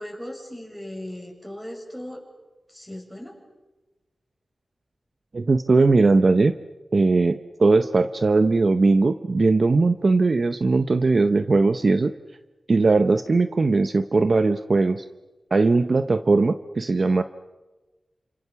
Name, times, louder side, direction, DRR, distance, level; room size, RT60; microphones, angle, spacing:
voice 1, 0.0-2.2 2.7-3.4, left 1 dB, ahead, 1 dB, 7.4 m, -37 dB
voice 2, 5.3-6.5 6.9-12.1 12.7-15.0 15.5-17.2, right 3 dB, 50° right, 10 dB, 0.9 m, -19 dB
29.0 x 27.0 x 7.0 m, 1.1 s
wide cardioid pair, 85°, 0 cm